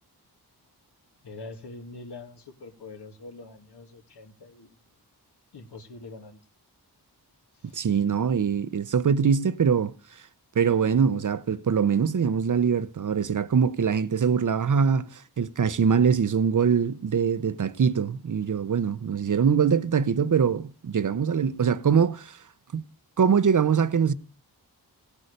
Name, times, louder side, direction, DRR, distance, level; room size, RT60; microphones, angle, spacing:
voice 1, 1.2-4.7 5.5-6.4 7.6-7.8, left 3 dB, 80° left, 2.2 m, -44 dB
voice 2, 7.7-9.9 10.6-22.4 22.7-22.8 23.2-24.1, right 6 dB, 50° right, 0.7 m, -23 dB
17.0 x 8.3 x 6.6 m
wide cardioid pair, 150°, 40 cm